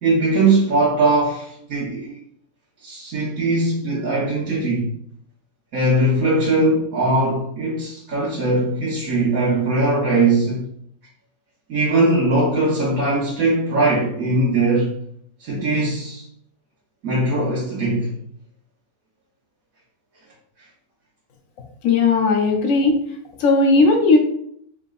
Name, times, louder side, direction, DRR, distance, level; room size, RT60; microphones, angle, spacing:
voice 1, 0.0-2.2 2.8-4.9 5.7-10.6 11.7-15.0 15.4-16.2 17.0-18.2, right 2 dB, 75° right, -6 dB, 1.4 m, -20 dB
voice 2, 21.8-23.0 23.4-24.2, left 3 dB, 70° left, 3 dB, 1.1 m, -16 dB
4.7 x 3.5 x 2.5 m, 0.67 s
omnidirectional pair, 1.5 m